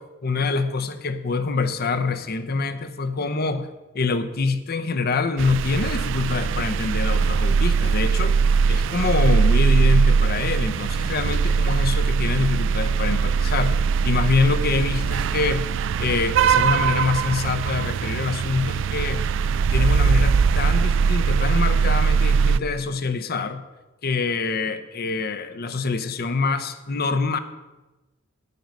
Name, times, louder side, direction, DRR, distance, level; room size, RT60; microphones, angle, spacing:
voice 1, 0.0-3.7 3.9-8.4 8.7-13.8 14.0-15.7 16.0-19.2 19.7-23.6 24.0-27.4, left 4 dB, 50° left, 10 dB, 0.7 m, -25 dB
sound 1, 5.4-22.6, right 5 dB, 65° right, 0.3 m, -21 dB
9.4 x 9.2 x 5.3 m, 1.1 s
head